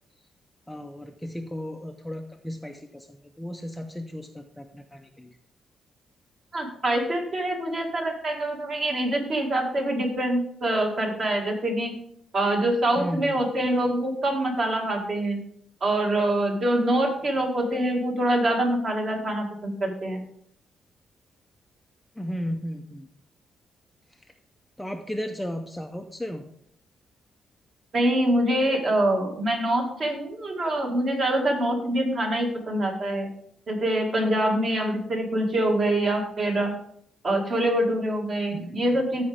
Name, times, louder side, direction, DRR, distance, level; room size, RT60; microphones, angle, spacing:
voice 1, 0.7-5.4 13.0-13.4 22.2-23.1 24.8-26.4 38.5-38.8, equal, 5° left, 4 dB, 0.5 m, -35 dB
voice 2, 6.5-11.9 12.3-15.4 15.8-20.2 27.9-33.3 33.7-36.8 37.2-39.3, right 1 dB, 35° right, 1 dB, 1.9 m, -25 dB
14.0 x 4.9 x 3.4 m, 0.67 s
cardioid pair, 155°, 0 cm